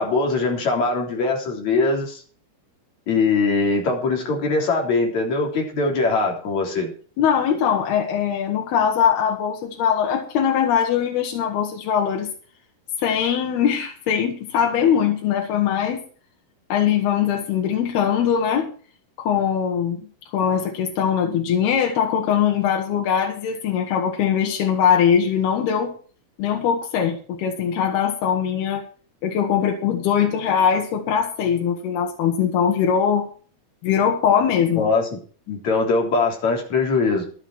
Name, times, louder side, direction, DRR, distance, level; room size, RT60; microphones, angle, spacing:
voice 1, 0.0-2.2 3.1-6.9 34.8-35.2 35.5-37.3, left 3 dB, 50° left, 1 dB, 4.6 m, -21 dB
voice 2, 7.2-12.3 13.0-16.0 16.7-18.7 19.2-20.0 20.3-25.9 26.4-28.8 29.2-33.3 33.8-34.9, left 8 dB, 85° left, 1 dB, 3.8 m, -21 dB
13.0 x 11.5 x 4.4 m, 0.42 s
omnidirectional pair, 4.4 m